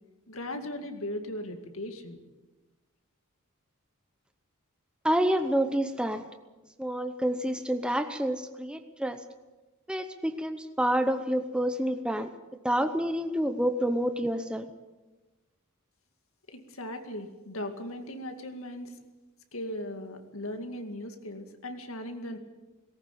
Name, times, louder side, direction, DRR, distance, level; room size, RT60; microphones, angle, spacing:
voice 1, 0.3-2.2 16.5-19.0 19.5-22.4, left 1 dB, 70° left, 6 dB, 2.2 m, -38 dB
voice 2, 5.0-6.2 6.8-9.2 9.9-12.3 12.6-14.7, equal, 5° right, 8 dB, 0.8 m, -28 dB
19.0 x 17.5 x 8.4 m, 1.2 s
head